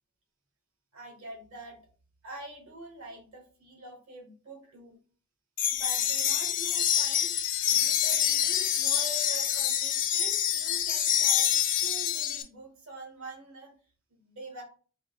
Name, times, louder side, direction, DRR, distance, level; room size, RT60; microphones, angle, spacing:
voice 1, 0.9-1.8 2.2-5.0 5.7-7.3 7.7-13.7 14.2-14.6, right 3 dB, 70° right, 0 dB, 1.5 m, -45 dB
sound 1, 5.6-12.4, left 9 dB, 35° left, 0.4 m, -26 dB
4.8 x 2.6 x 2.2 m, 0.39 s
head